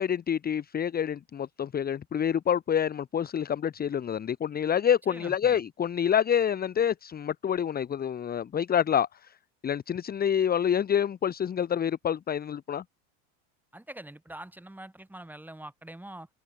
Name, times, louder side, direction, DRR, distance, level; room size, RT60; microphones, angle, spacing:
voice 1, 0.0-9.4 9.6-12.8, left 8 dB, 20° left, 1.3 m, -27 dB
voice 2, 5.1-5.6 13.7-16.3, right 1 dB, 5° right, 7.5 m, -44 dB
supercardioid pair, 115°, 40 cm